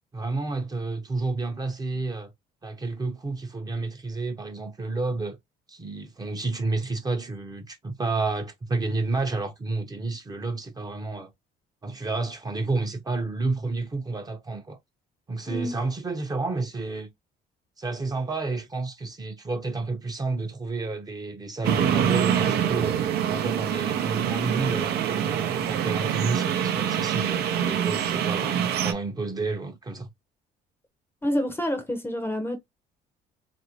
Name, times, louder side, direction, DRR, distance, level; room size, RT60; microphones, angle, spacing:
voice 1, 0.1-2.3 2.6-5.4 5.7-11.3 11.8-14.8 15.3-17.1 17.8-23.0 23.3-30.1, right 3 dB, 25° right, 0.7 m, -30 dB
sound 1, 21.6-28.9, right 9 dB, 70° right, 0.6 m, -25 dB
voice 2, 31.2-32.6, equal, 15° left, 0.7 m, -28 dB
2.9 x 2.6 x 2.8 m
cardioid pair, 110°, 17 cm